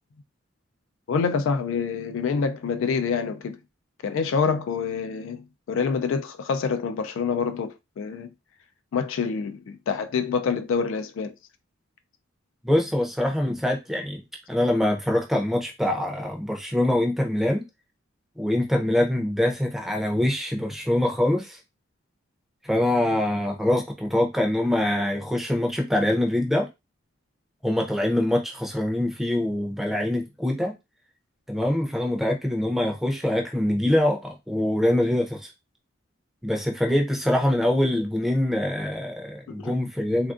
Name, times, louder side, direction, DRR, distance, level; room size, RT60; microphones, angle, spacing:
voice 1, 1.1-3.6 4.0-8.3 8.9-11.3 39.5-39.8, left 5 dB, 65° left, 0.3 m, -26 dB
voice 2, 12.6-14.2 14.5-17.6 18.4-21.6 22.6-26.7 27.6-30.7 31.5-35.5 36.4-40.3, left 1 dB, ahead, 0.6 m, -24 dB
3.3 x 2.5 x 2.4 m
head